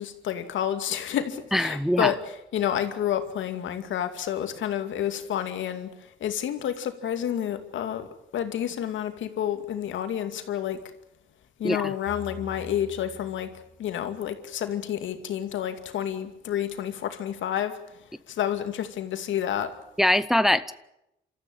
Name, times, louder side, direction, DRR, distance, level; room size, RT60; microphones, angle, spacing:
voice 1, 0.0-8.1 8.3-10.8 11.6-13.5 13.8-19.7, left 10 dB, 75° left, 2.4 m, -29 dB
voice 2, 1.5-2.1 11.6-11.9 20.0-20.7, left 1 dB, ahead, 0.7 m, -22 dB
sound 1, 12.1-14.3, left 1 dB, 20° right, 5.0 m, -45 dB
27.5 x 14.0 x 9.0 m
cardioid pair, 90°, 20 cm